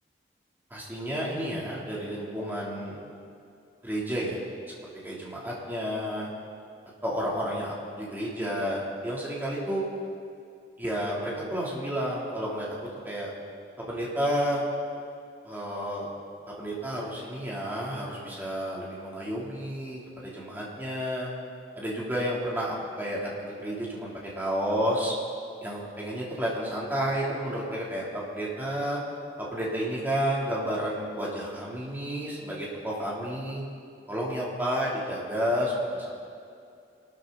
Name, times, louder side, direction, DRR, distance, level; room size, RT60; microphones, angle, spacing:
voice 1, 0.7-3.0 3.8-4.4 5.0-6.3 7.0-9.8 10.8-13.3 13.9-14.6 15.4-16.1 16.5-21.3 21.8-25.1 25.6-29.0 29.4-33.6 34.1-36.1, equal, 10° right, -5 dB, 3.5 m, -31 dB
25.0 x 13.0 x 4.2 m, 2.5 s
head